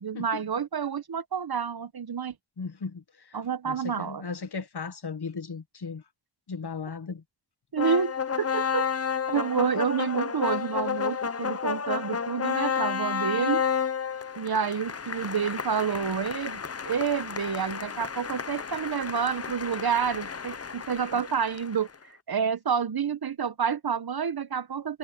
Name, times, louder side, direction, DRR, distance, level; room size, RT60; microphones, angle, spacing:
voice 1, 0.0-2.3 3.3-4.2 7.7-8.9 9.3-13.6 14.4-21.9 22.3-25.0, right 7 dB, 65° right, 0.9 m, -29 dB
voice 2, 2.6-3.4 3.6-6.0 6.5-7.2, left 5 dB, 70° left, 1.4 m, -36 dB
sound 1, 7.8-21.9, left 7 dB, 35° left, 0.7 m, -31 dB
wide cardioid pair, 65°, 41 cm